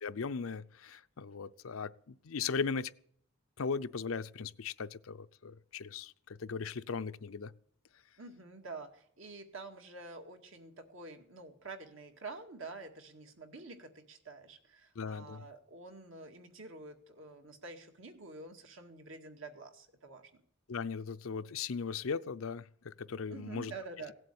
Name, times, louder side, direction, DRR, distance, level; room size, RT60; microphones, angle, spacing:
voice 1, 0.0-2.9 3.6-7.5 15.0-15.5 20.7-23.7, left 5 dB, 80° left, 0.6 m, -38 dB
voice 2, 8.2-20.4 23.3-24.1, right 3 dB, 65° right, 2.0 m, -48 dB
17.0 x 7.8 x 8.5 m
head